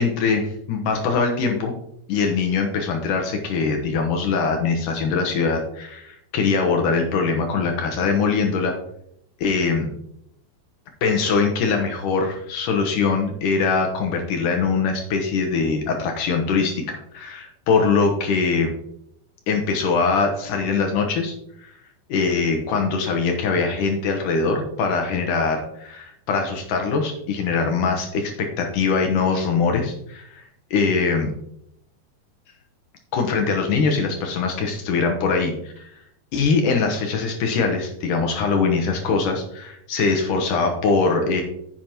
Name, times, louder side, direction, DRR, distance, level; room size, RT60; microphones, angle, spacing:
voice 1, 0.0-1.7 2.1-8.7 9.4-9.9 11.0-18.7 19.5-21.3 21.6-21.7 22.1-30.4 30.7-31.3 33.1-35.9 36.3-41.4, left 4 dB, 70° left, 3 dB, 2.3 m, -22 dB
10.0 x 7.5 x 2.9 m, 0.74 s
omnidirectional pair, 4.2 m